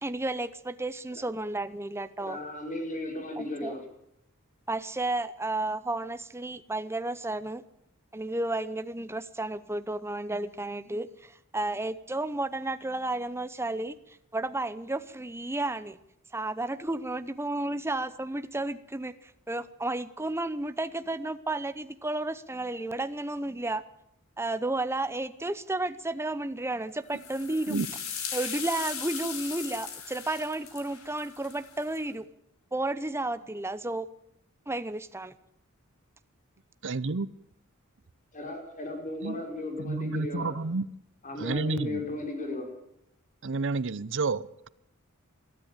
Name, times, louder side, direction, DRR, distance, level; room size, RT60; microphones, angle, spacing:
voice 1, 0.0-2.4 3.4-3.7 4.7-7.6 8.1-16.0 16.3-23.8 24.4-27.8 28.3-32.3 32.7-34.1 34.7-35.3, right 2 dB, 10° right, 13 dB, 0.9 m, -32 dB
voice 2, 2.2-3.8 38.3-40.5 41.2-42.7, left 2 dB, 40° left, 3 dB, 5.4 m, -35 dB
sound 1, 27.1-32.0, left 7 dB, 85° left, 5.0 m, -38 dB
voice 3, 36.8-37.3 39.2-39.4 39.8-40.9 41.4-42.0 43.4-44.7, right 3 dB, 60° right, 20 dB, 0.7 m, -30 dB
22.0 x 13.5 x 9.1 m, 0.80 s
head